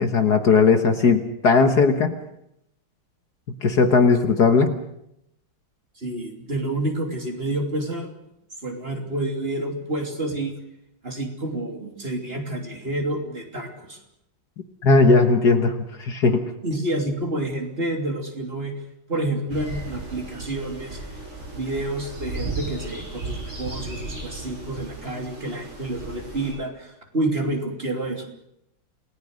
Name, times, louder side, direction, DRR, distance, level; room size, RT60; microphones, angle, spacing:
voice 1, 0.0-2.1 3.6-4.8 14.8-16.5, left 4 dB, 55° left, 7 dB, 1.8 m, -18 dB
voice 2, 6.0-8.1 8.6-10.5 11.0-14.0 16.6-18.7 19.1-21.0 21.5-28.2, right 1 dB, 30° right, 3 dB, 3.2 m, -29 dB
sound 1, 19.5-26.5, right 2 dB, 80° right, 9.0 m, -35 dB
28.5 x 19.0 x 6.5 m, 0.79 s
omnidirectional pair, 2.2 m